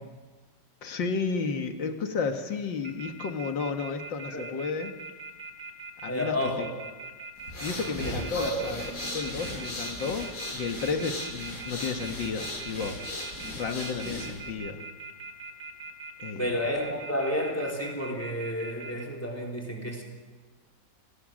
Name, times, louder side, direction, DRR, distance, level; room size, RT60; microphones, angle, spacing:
voice 1, 0.8-4.9 6.0-6.7 7.6-8.8 9.1-13.0 13.6-14.9 16.2-16.5, left 5 dB, 85° left, 6 dB, 2.2 m, -32 dB
sound 1, 2.8-19.0, right 4 dB, 80° right, 3.1 m, -41 dB
voice 2, 6.1-6.7 8.0-8.8 16.4-20.0, equal, 5° left, -1 dB, 3.7 m, -31 dB
sound 2, 7.4-14.5, left 1 dB, 45° left, 8.2 m, -37 dB
29.0 x 18.0 x 6.4 m, 1.3 s
omnidirectional pair, 2.0 m